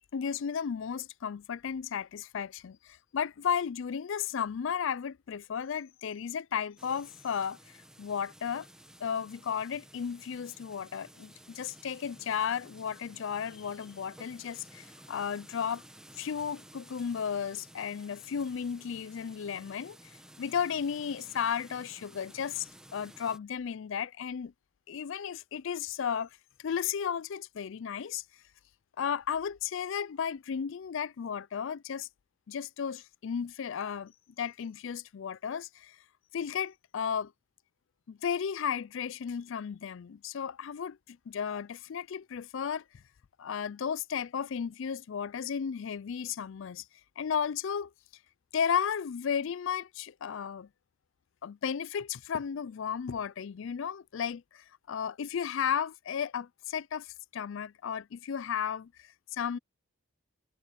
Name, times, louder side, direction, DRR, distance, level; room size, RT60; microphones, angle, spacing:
voice 1, 0.1-8.7 9.0-15.8 16.2-20.0 20.4-24.5 24.9-26.3 26.6-28.2 29.0-32.1 32.5-34.1 34.4-36.0 36.3-37.3 38.1-42.8 43.4-46.8 47.2-47.9 48.5-50.7 51.4-59.6, left 7 dB, 60° left, 0.4 m, -34 dB
sound 1, 6.8-23.4, right 1 dB, 5° right, 1.2 m, -54 dB
head